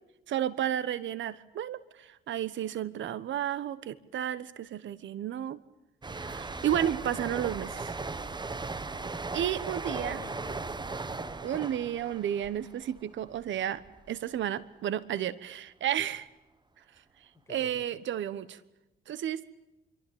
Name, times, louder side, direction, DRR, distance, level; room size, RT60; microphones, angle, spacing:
voice 1, 0.3-5.6 6.1-7.9 9.3-10.2 11.4-16.3 17.5-18.6 19.1-19.4, right 10 dB, 70° right, 17 dB, 1.2 m, -32 dB
sound 1, 6.0-13.5 13.8-14.1, right 3 dB, 20° right, 1.4 m, -38 dB
voice 2, 9.8-11.6 17.5-17.8, left 3 dB, 15° left, 3 dB, 6.4 m, -47 dB
26.5 x 24.0 x 8.7 m, 0.95 s
cardioid pair, 90°, 20 cm